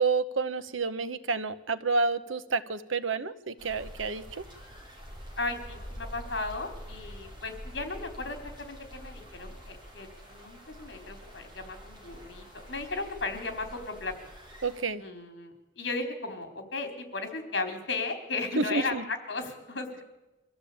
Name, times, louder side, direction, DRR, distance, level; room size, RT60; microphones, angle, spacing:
voice 1, 0.0-4.4 14.6-15.0 18.6-19.0, right 4 dB, 80° right, 12 dB, 1.1 m, -29 dB
sound 1, 3.6-14.8, equal, 20° right, 4.7 m, -46 dB
voice 2, 5.4-14.1 15.0-20.0, left 3 dB, 60° left, 6 dB, 4.1 m, -35 dB
24.0 x 14.5 x 8.8 m, 0.98 s
head